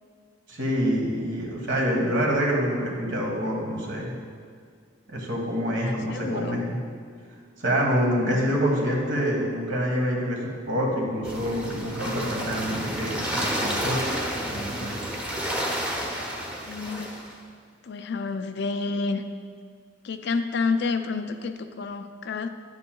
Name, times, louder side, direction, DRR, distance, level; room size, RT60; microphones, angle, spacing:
voice 1, 0.5-4.1 5.1-6.8 7.6-10.4 10.6-14.0 14.4-14.9, equal, 65° right, -1 dB, 1.6 m, -26 dB
voice 2, 5.8-6.6 16.6-17.1 17.8-19.2 20.0-22.5, left 4 dB, 60° left, 8 dB, 0.4 m, -29 dB
sound 1, 11.2-17.3, equal, 5° right, 0.9 m, -30 dB
10.0 x 8.2 x 2.3 m, 2.1 s
head